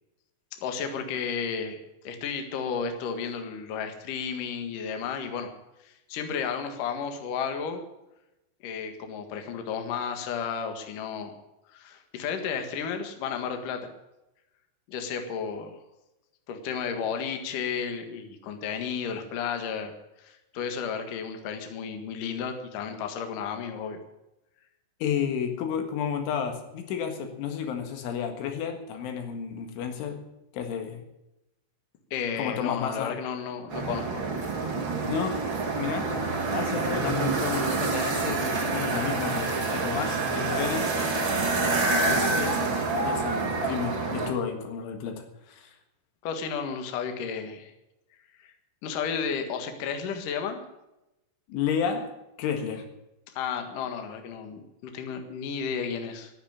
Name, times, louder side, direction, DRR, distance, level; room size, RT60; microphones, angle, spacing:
voice 1, 0.6-1.8 2.0-5.5 5.8-7.8 8.6-11.3 11.7-13.9 14.9-15.7 16.5-19.9 20.2-24.0 32.1-34.2 41.8-42.2 46.2-47.7 48.4-48.5 48.8-50.6 53.3-56.3, left 6 dB, 55° left, 6 dB, 2.7 m, -33 dB
voice 2, 25.0-30.2 30.5-31.0 32.4-33.2 35.1-35.5 35.8-40.9 42.0-45.7 51.5-52.1 52.4-52.9, left 7 dB, 85° left, 5 dB, 4.2 m, -32 dB
sound 1, 33.7-44.3, right 3 dB, 35° right, 2.3 m, -27 dB
14.0 x 10.0 x 8.7 m, 0.93 s
omnidirectional pair, 5.4 m